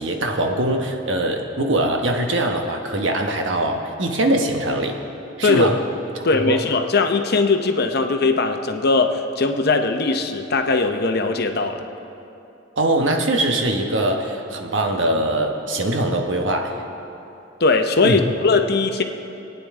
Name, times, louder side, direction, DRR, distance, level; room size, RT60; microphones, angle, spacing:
voice 1, 0.0-5.0 5.4-5.8 6.5-6.6 12.8-16.8 18.0-18.2, right 1 dB, 75° right, 3 dB, 1.2 m, -22 dB
voice 2, 6.2-11.9 17.6-19.0, left 3 dB, 55° left, 6 dB, 0.8 m, -19 dB
23.0 x 9.3 x 3.7 m, 2.8 s
head